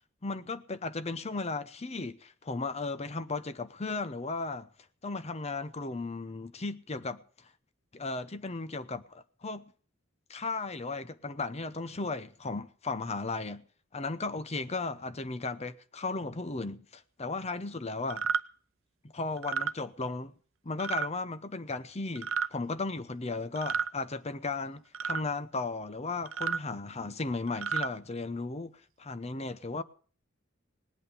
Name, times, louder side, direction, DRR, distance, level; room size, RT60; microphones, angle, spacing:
voice 1, 0.2-4.7 5.0-7.2 7.9-9.6 10.3-13.6 13.9-18.3 19.0-20.3 20.6-29.8, left 3 dB, 35° left, 0.8 m, -35 dB
sound 1, 18.1-18.4 19.4-19.7 20.8-21.1 22.1-22.5 23.6-23.9 24.9-25.2 26.3-26.6 27.5-27.9, right 6 dB, 85° right, 0.6 m, -31 dB
19.0 x 8.5 x 6.8 m
head